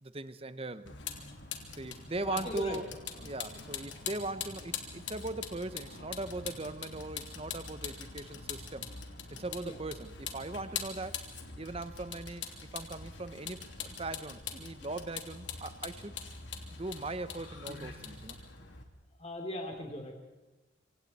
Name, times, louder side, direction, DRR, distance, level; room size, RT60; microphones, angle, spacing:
voice 1, 0.0-0.9 1.8-2.9 3.2-8.9 9.3-11.2 11.6-12.4 12.7-16.1 16.7-18.4, right 2 dB, 30° right, 12 dB, 1.0 m, -39 dB
Vehicle, 0.9-18.8, left 6 dB, 65° left, 3.0 m, -43 dB
voice 2, 2.2-2.8 9.6-9.8 19.2-20.1, left 1 dB, 30° left, 2 dB, 2.9 m, -38 dB
26.5 x 26.0 x 4.3 m, 1.1 s
head